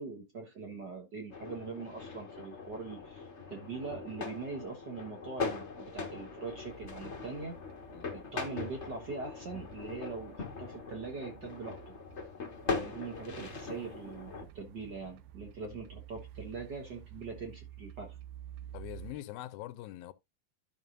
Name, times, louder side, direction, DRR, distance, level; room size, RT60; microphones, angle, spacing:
voice 1, 0.0-7.6 8.1-11.9 12.7-18.2, right 4 dB, 55° right, 1.2 m, -42 dB
sound 1, 1.3-14.4, left 4 dB, 70° left, 0.6 m, -41 dB
sound 2, 6.5-19.1, right 11 dB, 85° right, 2.7 m, -52 dB
voice 2, 18.7-20.1, left 14 dB, 90° left, 2.5 m, -43 dB
12.5 x 5.5 x 2.6 m
omnidirectional pair, 4.1 m